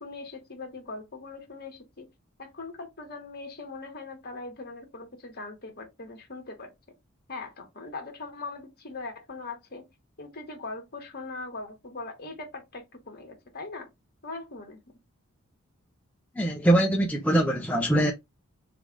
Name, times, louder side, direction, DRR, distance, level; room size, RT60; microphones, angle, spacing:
voice 1, 0.0-2.1 2.4-6.7 7.3-9.8 10.2-13.9 14.2-14.8, left 3 dB, 45° left, 1.3 m, -40 dB
voice 2, 16.4-18.1, right 1 dB, 5° left, 0.5 m, -23 dB
3.8 x 3.3 x 3.5 m
head